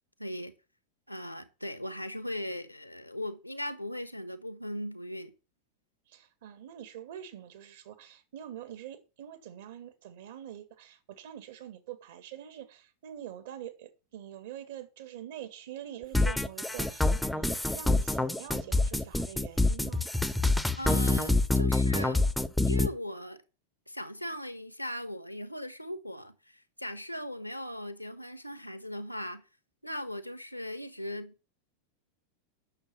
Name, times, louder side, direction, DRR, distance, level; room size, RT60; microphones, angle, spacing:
voice 1, 0.2-0.5 1.1-5.3 20.8-22.3 22.7-23.4 23.9-29.4 29.8-31.3, left 1 dB, 90° left, 1.2 m, -38 dB
voice 2, 6.1-20.1, right 11 dB, 55° right, 1.8 m, -45 dB
sound 1, 16.1-22.9, left 2 dB, 5° left, 0.7 m, -26 dB
8.8 x 6.6 x 7.4 m
figure-of-eight pair, 90°, 0 cm